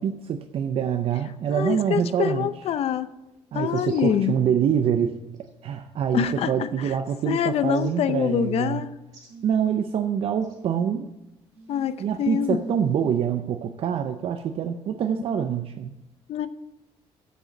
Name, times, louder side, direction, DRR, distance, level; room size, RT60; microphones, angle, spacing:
voice 1, 0.0-2.5 3.5-5.2 5.6-8.8 9.4-11.1 12.0-15.9, right 8 dB, 55° right, 7 dB, 0.6 m, -25 dB
voice 2, 1.5-3.1 3.5-4.4 6.1-6.9 7.3-8.9 11.7-12.6 16.3-16.5, left 9 dB, 65° left, 13 dB, 0.6 m, -25 dB
sound 1, 3.7-4.2 5.3-5.5 6.1-6.6 7.7-7.9 9.1-9.4 10.4-10.6, right 2 dB, 30° right, 4.0 m, -53 dB
sound 2, 8.1-8.6 9.3-10.0 10.4-10.8 11.5-13.1 14.4-14.5, right 1 dB, 80° right, 1.7 m, -45 dB
7.8 x 6.8 x 7.5 m, 0.95 s
cardioid pair, 130°, 11 cm